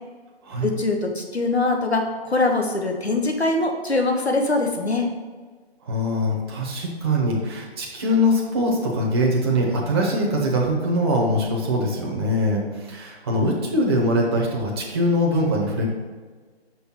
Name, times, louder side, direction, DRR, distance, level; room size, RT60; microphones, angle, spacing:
voice 1, 0.6-5.1, left 2 dB, 90° left, 3 dB, 1.2 m, -22 dB
voice 2, 5.8-15.9, equal, 25° right, -2 dB, 0.9 m, -22 dB
6.0 x 3.6 x 5.6 m, 1.4 s
figure-of-eight pair, 145°, 32 cm